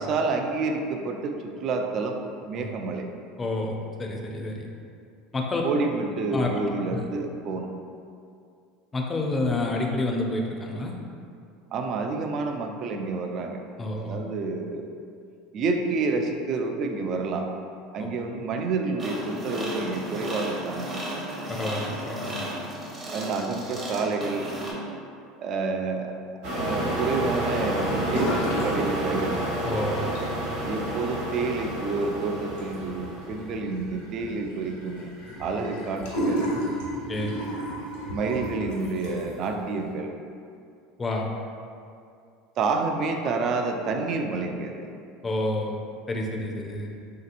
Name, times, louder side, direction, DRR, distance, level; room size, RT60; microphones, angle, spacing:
voice 1, 0.0-3.1 5.6-7.7 11.7-13.6 14.0-15.0 15.5-17.5 17.9-21.0 23.1-24.5 25.4-26.1 26.5-29.3 30.6-35.1 35.4-36.5 38.1-40.2 42.6-44.9, right 3 dB, 50° right, 4 dB, 0.3 m, -29 dB
voice 2, 3.4-4.7 5.3-5.6 6.3-6.5 6.9-7.0 8.9-10.9 13.8-14.2 18.0-18.1 21.5-22.4 29.6-30.1 37.1-37.3 41.0-41.3 45.2-45.8 46.1-47.0, left 2 dB, 20° left, 0 dB, 0.4 m, -29 dB
sound 1, 19.0-24.7, right 1 dB, 30° right, 0.7 m, -35 dB
sound 2, 26.4-33.5, right 1 dB, 85° right, 1.0 m, -29 dB
sound 3, 28.1-28.7 28.9-29.6 30.0-39.4, equal, 85° left, 1.0 m, -33 dB
3.2 x 2.8 x 2.5 m, 2.4 s
supercardioid pair, 105°, 0 cm